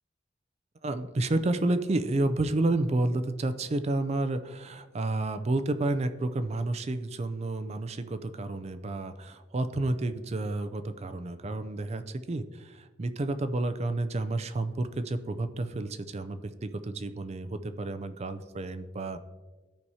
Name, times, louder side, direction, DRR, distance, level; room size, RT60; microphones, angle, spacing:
voice 1, 0.8-12.4 13.0-19.2, right 2 dB, 35° right, 11 dB, 0.4 m, -30 dB
13.5 x 4.7 x 2.8 m, 1.3 s
head